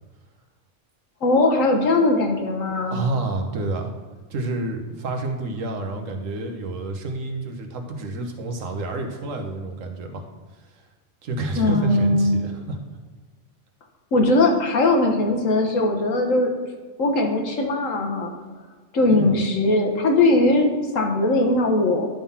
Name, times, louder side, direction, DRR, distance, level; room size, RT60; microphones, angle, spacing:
voice 1, 1.2-3.0 11.6-12.4 14.1-16.5 17.0-18.3 18.9-22.1, left 2 dB, 90° left, 3 dB, 1.5 m, -20 dB
voice 2, 2.9-3.9 4.3-10.2 11.2-12.8 19.1-19.4, right 2 dB, 90° right, 4 dB, 1.4 m, -29 dB
10.5 x 3.8 x 5.6 m, 1.4 s
omnidirectional pair, 1.3 m